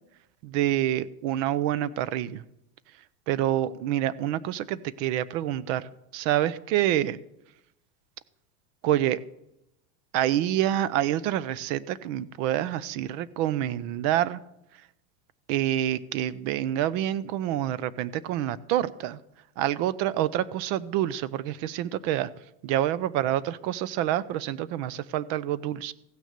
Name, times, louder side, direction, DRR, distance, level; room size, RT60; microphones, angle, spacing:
voice 1, 0.4-2.4 3.3-7.2 8.8-9.2 10.1-14.4 15.5-19.2 19.6-22.3 22.6-25.9, right 12 dB, 50° right, 18 dB, 0.7 m, -27 dB
15.5 x 6.3 x 6.7 m, 0.86 s
supercardioid pair, 140°, 48 cm